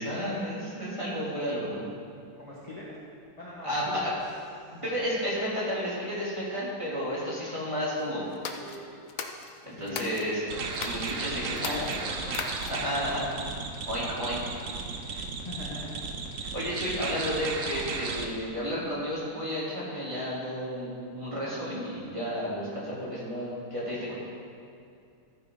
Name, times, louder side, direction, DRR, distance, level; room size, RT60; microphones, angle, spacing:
voice 1, 0.0-1.8 3.6-4.1 4.8-9.0 9.6-10.4 10.8-11.9 12.7-13.3 13.9-14.4 15.1-15.2 16.4-24.1, equal, 15° right, -8 dB, 3.1 m, -32 dB
voice 2, 2.4-2.9 3.4-4.2 9.7-10.1 11.3-12.3 15.4-15.9, left 2 dB, 20° left, -7 dB, 1.5 m, -41 dB
sound 1, 8.3-10.3 10.7-11.1 11.5-12.9, left 6 dB, 65° left, 0.8 m, -38 dB
sound 2, 10.5-18.3, right 4 dB, 55° right, 0.9 m, -35 dB
14.5 x 9.6 x 3.9 m, 2.5 s
omnidirectional pair, 2.4 m